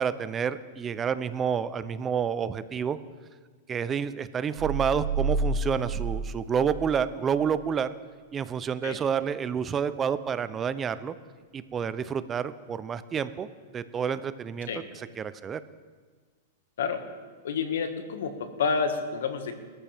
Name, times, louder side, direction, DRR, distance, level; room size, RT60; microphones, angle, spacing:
voice 1, 0.0-3.0 3.7-7.9 8.3-11.1 11.5-13.5 13.7-14.7 15.2-15.6, right 7 dB, 20° right, 14 dB, 0.6 m, -29 dB
sound 1, 4.6-7.1 7.5-7.6, right 3 dB, 55° right, 1.8 m, -30 dB
voice 2, 17.4-19.5, left 5 dB, 80° left, 6 dB, 1.8 m, -29 dB
21.0 x 13.5 x 3.5 m, 1.5 s
supercardioid pair, 145°, 0 cm